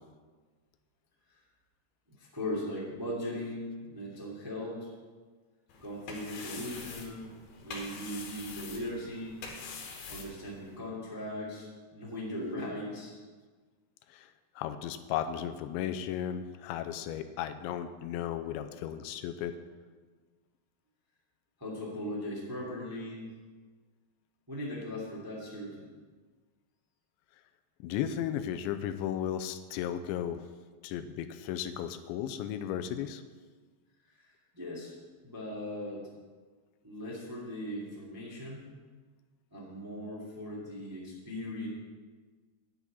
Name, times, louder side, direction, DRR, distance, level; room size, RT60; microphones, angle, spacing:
voice 1, 2.2-4.9 5.8-7.3 7.6-9.4 10.1-13.1 21.6-23.3 24.5-25.9 34.2-34.9 35.2-36.1 36.8-38.7 39.5-41.7, left 1 dB, 10° right, -5 dB, 1.1 m, -39 dB
sound 1, 5.7-10.8, left 4 dB, 65° left, 3.1 m, -45 dB
voice 2, 14.1-19.5 27.8-30.4 30.8-33.2, left 10 dB, 90° left, 10 dB, 2.9 m, -35 dB
10.5 x 5.7 x 8.6 m, 1.4 s
omnidirectional pair, 5.2 m